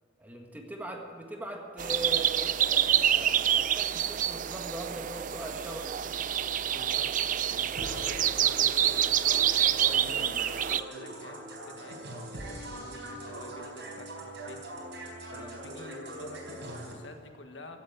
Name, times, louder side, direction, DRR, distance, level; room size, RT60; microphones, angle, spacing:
voice 1, 0.2-6.0 15.3-15.5, right 1 dB, 10° right, 1 dB, 1.7 m, -40 dB
sound 1, 1.8-10.8, right 10 dB, 45° right, 0.4 m, -27 dB
voice 2, 6.7-11.4 11.7-12.0 12.3-14.6 14.9-15.0 15.3-17.8, left 2 dB, 75° left, 5 dB, 1.6 m, -48 dB
sound 2, 7.8-16.9, right 1 dB, 70° right, 4.2 m, -42 dB
16.5 x 8.4 x 8.4 m, 2.6 s
head